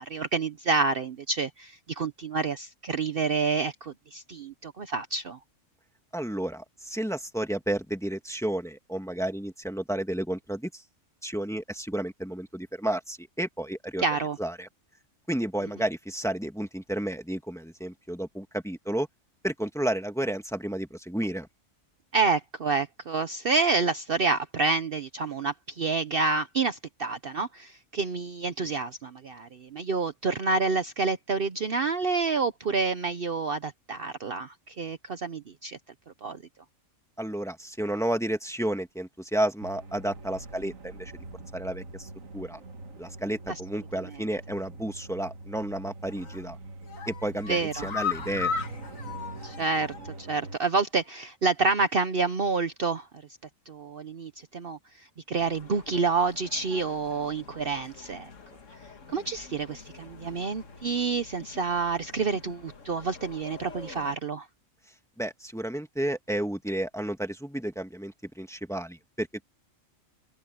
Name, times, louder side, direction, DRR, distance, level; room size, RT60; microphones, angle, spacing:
voice 1, 0.0-5.4 14.0-14.4 22.1-35.8 36.2-36.4 47.5-47.9 49.4-53.1 53.7-58.3 59.1-64.5, right 4 dB, 50° right, 1.0 m, -28 dB
voice 2, 6.1-10.8 11.2-14.0 14.4-14.7 15.3-19.1 19.4-21.5 37.2-41.1 41.5-42.1 42.3-42.6 43.0-46.6 47.1-48.5 65.2-69.4, right 1 dB, ahead, 1.7 m, -31 dB
sound 1, 39.6-50.6, right 2 dB, 80° right, 2.1 m, -43 dB
sound 2, 46.1-46.4 46.8-50.2 50.5-50.6 51.0-51.1, left 6 dB, 85° left, 2.1 m, -35 dB
sound 3, 55.3-64.1, left 4 dB, 70° left, 2.0 m, -48 dB
omnidirectional pair, 1.4 m